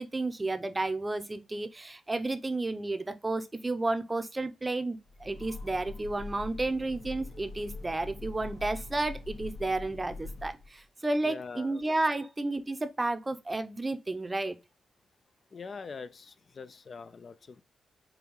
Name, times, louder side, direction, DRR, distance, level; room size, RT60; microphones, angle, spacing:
voice 1, 0.0-14.5, right 2 dB, 25° right, 0.6 m, -32 dB
Train, 5.0-10.8, left 3 dB, 90° left, 1.6 m, -43 dB
voice 2, 11.2-11.8 15.5-17.6, left 5 dB, 50° left, 0.3 m, -43 dB
4.7 x 2.3 x 3.4 m
cardioid pair, 80°, 0 cm